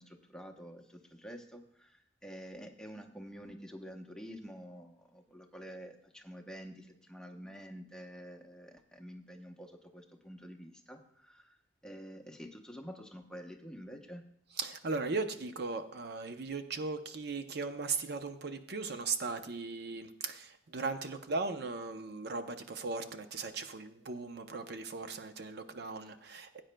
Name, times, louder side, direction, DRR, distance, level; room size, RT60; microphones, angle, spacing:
voice 1, 0.0-11.6 11.8-14.2, equal, 5° left, 4 dB, 0.8 m, -48 dB
voice 2, 14.6-26.6, right 4 dB, 60° right, 8 dB, 0.6 m, -38 dB
17.5 x 8.8 x 2.2 m, 0.69 s
head